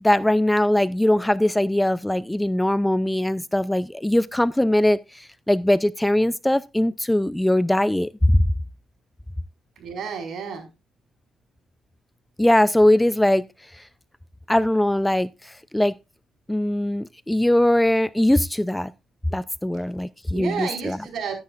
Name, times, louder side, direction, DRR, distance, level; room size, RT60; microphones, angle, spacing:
voice 1, 0.0-8.4 12.4-13.4 13.7-13.8 14.5-15.9 16.5-18.9 19.3-21.0, left 1 dB, 5° left, 0.4 m, -21 dB
voice 2, 9.8-10.7 20.3-21.3, right 6 dB, 70° right, 4.9 m, -31 dB
12.5 x 10.0 x 2.4 m
cardioid pair, 90°, 0 cm